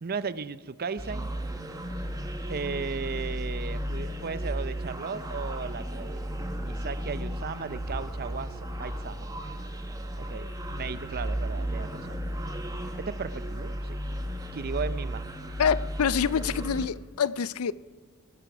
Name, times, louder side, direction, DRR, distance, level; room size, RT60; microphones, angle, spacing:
voice 1, 0.0-1.3 2.5-9.3 10.2-12.2 13.0-14.0 14.5-15.3, right 5 dB, 45° right, 0.6 m, -36 dB
Forcefield loop, 1.0-16.9, equal, 15° right, 1.3 m, -34 dB
voice 2, 15.6-17.7, left 7 dB, 90° left, 0.5 m, -26 dB
19.0 x 11.5 x 6.0 m
head